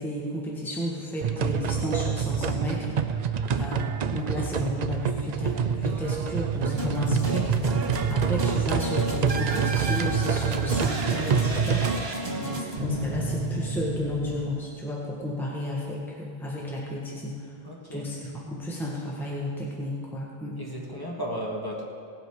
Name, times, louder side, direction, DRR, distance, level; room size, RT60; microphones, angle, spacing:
voice 1, 0.0-11.9 12.4-17.5 17.9-20.6, left 1 dB, ahead, -4 dB, 1.6 m, -33 dB
sound 1, 1.2-12.1, right 7 dB, 55° right, 0.5 m, -27 dB
sound 2, 6.8-15.0, right 1 dB, 80° right, 1.9 m, -31 dB
voice 2, 17.6-18.1 20.6-21.8, equal, 20° left, -4 dB, 1.9 m, -34 dB
17.5 x 7.9 x 4.9 m, 2.4 s
omnidirectional pair, 1.0 m